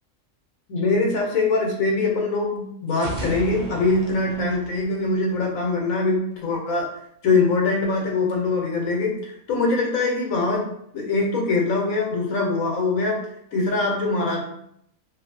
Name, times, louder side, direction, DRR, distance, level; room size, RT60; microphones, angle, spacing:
voice 1, 0.7-6.9 7.2-13.2 13.5-14.4, left 3 dB, 80° left, 0 dB, 1.2 m, -23 dB
sound 1, 2.9-5.7, right 2 dB, 75° right, 0.4 m, -36 dB
2.7 x 2.6 x 2.6 m, 0.72 s
omnidirectional pair, 1.4 m